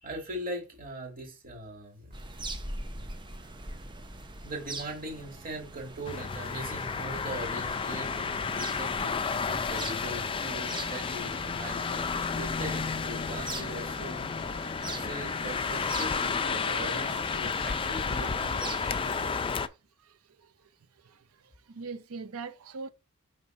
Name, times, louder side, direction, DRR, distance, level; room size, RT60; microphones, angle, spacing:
voice 1, 0.0-2.1 4.4-14.3 14.8-19.6, right 1 dB, 40° right, 2.6 m, -41 dB
sound 1, 2.1-19.4, right 2 dB, 20° right, 0.6 m, -43 dB
sound 2, 6.0-19.7, left 5 dB, 25° left, 0.4 m, -32 dB
sound 3, 7.6-17.2, left 4 dB, 50° left, 0.8 m, -48 dB
voice 2, 21.7-22.9, right 4 dB, 70° right, 0.6 m, -40 dB
5.5 x 3.4 x 5.3 m
head